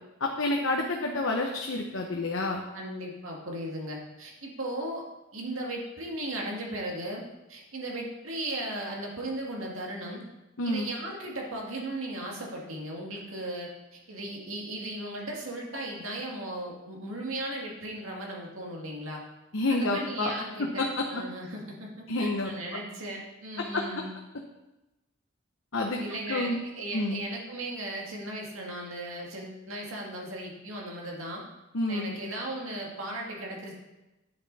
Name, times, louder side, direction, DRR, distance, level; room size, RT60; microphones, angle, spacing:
voice 1, 0.2-2.6 10.6-10.9 19.5-20.3 20.8-21.0 22.1-22.5 23.7-23.8 25.7-26.0 26.3-26.6 26.9-27.2 31.7-32.1, left 2 dB, 65° left, 1 dB, 0.9 m, -28 dB
voice 2, 2.7-5.0 5.3-10.2 10.6-19.2 19.7-24.1 25.9-31.4 31.9-33.7, right 1 dB, 90° right, -1 dB, 2.2 m, -37 dB
9.8 x 7.0 x 4.1 m, 1.0 s
head